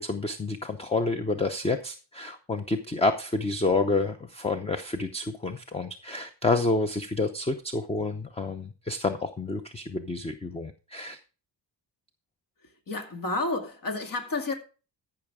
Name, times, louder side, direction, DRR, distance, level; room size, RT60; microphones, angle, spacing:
voice 1, 0.0-11.2, left 3 dB, 15° left, 0.7 m, -29 dB
voice 2, 12.9-14.5, left 2 dB, 50° left, 2.4 m, -30 dB
14.0 x 5.9 x 4.8 m
cardioid pair, 130°, 43 cm